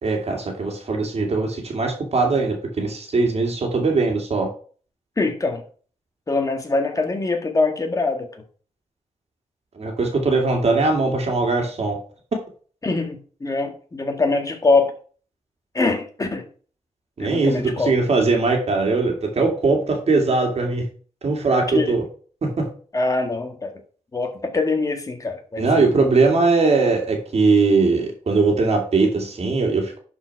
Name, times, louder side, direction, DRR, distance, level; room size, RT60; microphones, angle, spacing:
voice 1, 0.0-4.5 9.8-12.0 17.2-20.9 21.2-22.0 22.4-22.7 25.6-30.0, right 3 dB, 55° right, 2 dB, 2.4 m, -20 dB
voice 2, 5.2-5.6 6.3-8.3 12.8-14.9 15.7-16.4 17.2-17.9 21.7-21.9 22.9-23.8 24.1-25.9, left 3 dB, 25° left, 4 dB, 1.8 m, -23 dB
11.0 x 4.9 x 4.7 m, 0.42 s
wide cardioid pair, 155°, 13 cm